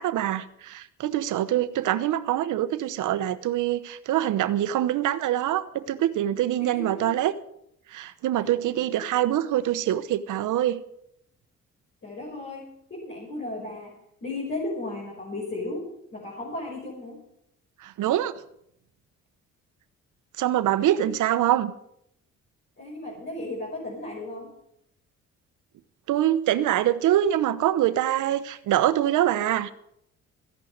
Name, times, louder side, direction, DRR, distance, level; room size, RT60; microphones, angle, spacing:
voice 1, 0.0-7.3 7.9-10.8 17.8-18.3 20.4-21.7 26.1-29.7, right 12 dB, 80° right, 1.0 m, -24 dB
voice 2, 6.7-7.1 8.3-8.5 12.0-14.0 14.2-17.3 21.0-21.2 22.8-24.5, left 2 dB, 40° left, 5.6 m, -35 dB
15.0 x 11.0 x 6.5 m
cardioid pair, 90°, 30 cm